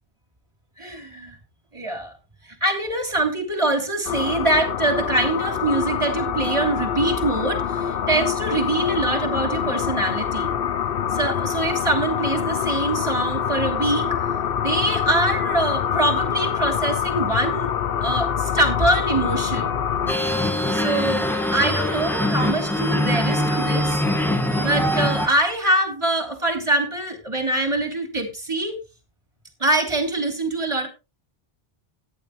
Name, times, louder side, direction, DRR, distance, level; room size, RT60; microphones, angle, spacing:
voice 1, 0.8-1.4 1.7-2.1 2.4-10.5 11.1-14.2 14.6-17.7 18.0-19.7 20.7-24.0 24.6-28.8 29.6-30.9, right 2 dB, 30° right, 4 dB, 3.2 m, -24 dB
sound 1, 4.1-20.1, left 8 dB, 60° left, 0.9 m, -25 dB
sound 2, 20.1-25.3, left 1 dB, ahead, 2.0 m, -23 dB
14.5 x 9.7 x 3.1 m, 0.27 s
omnidirectional pair, 1.1 m